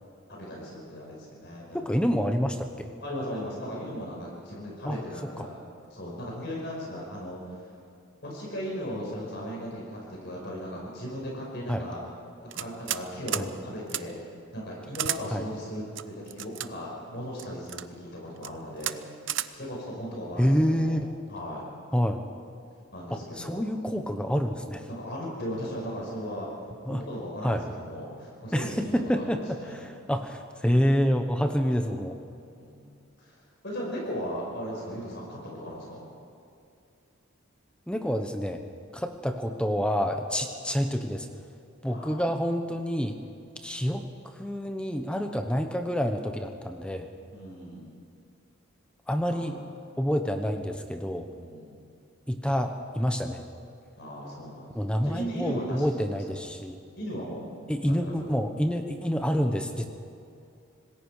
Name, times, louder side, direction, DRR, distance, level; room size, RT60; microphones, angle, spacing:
voice 1, 0.3-2.0 3.0-5.6 5.9-7.5 8.2-12.0 12.4-14.2 14.5-19.0 19.5-21.0 21.3-21.6 22.9-24.3 24.9-26.5 26.8-29.8 32.5-36.0 41.9-42.3 47.3-47.9 49.2-49.6 51.3-51.8 54.0-54.7 55.0-55.9 56.1-56.2 57.0-57.5 57.8-58.3, equal, 55° left, -2 dB, 5.1 m, -37 dB
voice 2, 1.7-2.9 4.9-5.0 5.4-5.5 11.7-11.8 13.3-13.4 15.3-15.4 20.4-21.1 21.9-22.2 23.1-24.9 26.9-27.0 27.4-27.6 28.5-32.2 37.9-38.6 38.9-41.3 41.8-43.2 43.6-44.1 44.3-47.1 49.1-49.6 50.0-51.3 52.3-53.4 54.7-56.8 57.7-59.9, equal, 5° left, 5 dB, 1.0 m, -27 dB
sound 1, 12.5-13.0 13.3-13.5 13.9-14.0 14.9-15.2 16.0-16.7 17.4-17.9 18.4-18.5 18.8-19.0 19.3-19.5, right 12 dB, 60° right, 0.7 m, -31 dB
26.5 x 20.0 x 4.9 m, 2.5 s
head